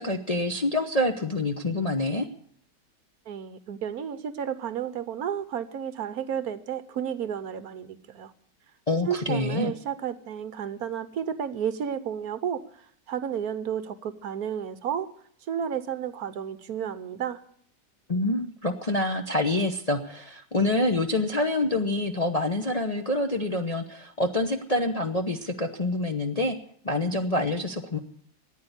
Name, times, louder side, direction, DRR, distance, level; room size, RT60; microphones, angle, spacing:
voice 1, 0.0-2.3 8.9-9.7 18.1-26.6 26.8-28.0, left 2 dB, 30° left, 3 dB, 0.7 m, -26 dB
voice 2, 3.3-8.3 9.1-15.1 15.5-17.4, right 8 dB, 65° right, 14 dB, 1.2 m, -32 dB
14.0 x 9.6 x 8.1 m, 0.65 s
omnidirectional pair, 1.8 m